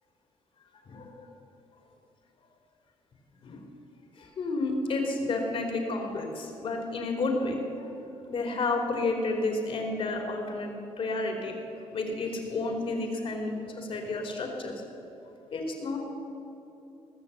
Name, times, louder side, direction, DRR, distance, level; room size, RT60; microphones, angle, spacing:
voice 1, 0.8-1.3 3.4-3.6 4.2-7.9 8.3-11.5 11.9-14.7 15.5-16.0, left 3 dB, 55° left, 2 dB, 3.4 m, -31 dB
20.5 x 7.0 x 8.4 m, 2.8 s
cardioid pair, 80°, 11 cm